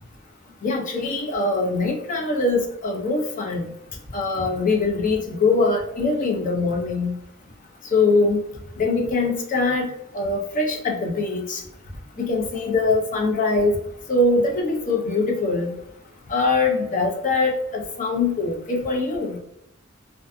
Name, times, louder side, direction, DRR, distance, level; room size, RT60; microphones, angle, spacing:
voice 1, 0.6-3.6 4.1-7.1 7.9-8.4 8.8-9.9 10.1-11.6 12.2-13.8 14.1-15.7 16.3-19.4, left 3 dB, 40° left, 0 dB, 0.6 m, -22 dB
2.6 x 2.3 x 2.4 m, 0.83 s
head